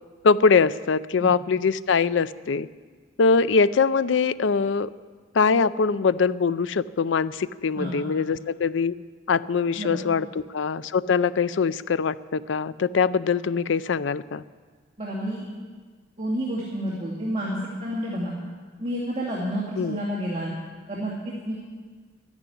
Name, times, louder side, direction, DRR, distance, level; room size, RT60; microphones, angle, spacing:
voice 1, 0.2-2.7 3.2-4.9 5.3-8.9 9.3-14.4 19.8-20.0, left 5 dB, 75° left, 16 dB, 0.5 m, -22 dB
voice 2, 15.0-15.4 16.2-18.3 18.8-20.5 20.9-21.5, equal, 30° right, -5 dB, 2.3 m, -29 dB
12.5 x 10.5 x 9.9 m, 1.5 s
head